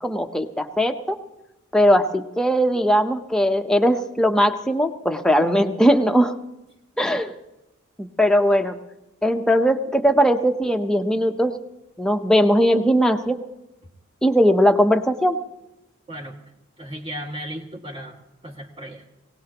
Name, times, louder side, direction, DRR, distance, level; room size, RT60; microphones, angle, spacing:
voice 1, 0.0-1.2 1.7-6.3 7.0-7.3 8.0-8.8 9.2-11.5 12.0-13.4 14.2-15.4, equal, 5° left, 5 dB, 0.8 m, -19 dB
voice 2, 16.8-18.2 18.4-19.0, equal, 25° right, 0 dB, 2.1 m, -35 dB
22.5 x 18.0 x 3.0 m, 0.93 s
head